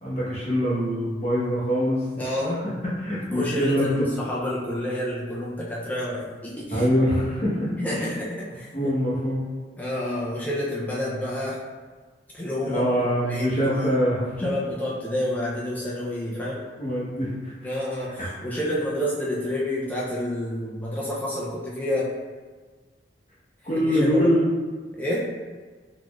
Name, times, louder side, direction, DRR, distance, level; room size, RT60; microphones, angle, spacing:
voice 1, 0.0-2.7 3.0-3.9 6.7-8.1 8.7-9.4 12.6-14.5 16.3-16.4 16.8-17.7 18.2-18.3 23.6-24.4, equal, 35° left, -8 dB, 1.0 m, -24 dB
voice 2, 2.2-2.6 3.3-6.9 7.8-8.7 9.8-11.6 12.3-12.8 13.3-13.9 14.4-16.6 17.6-22.1 23.9-24.3 24.9-25.3, left 1 dB, 10° left, -6 dB, 0.4 m, -29 dB
4.0 x 3.0 x 2.3 m, 1.4 s
head